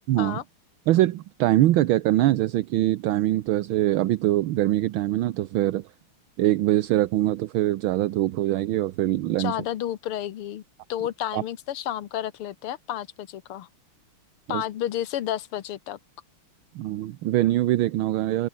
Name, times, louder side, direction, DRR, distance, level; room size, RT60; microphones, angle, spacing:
voice 1, 0.1-0.4 0.9-5.8 6.4-9.6 11.3-11.4 14.5-14.6 16.7-18.5, right 15 dB, 75° right, 1.5 m, -23 dB
voice 2, 9.4-10.6 10.9-13.7 14.5-16.0, left 11 dB, 85° left, 2.0 m, -31 dB
open air
omnidirectional pair, 2.4 m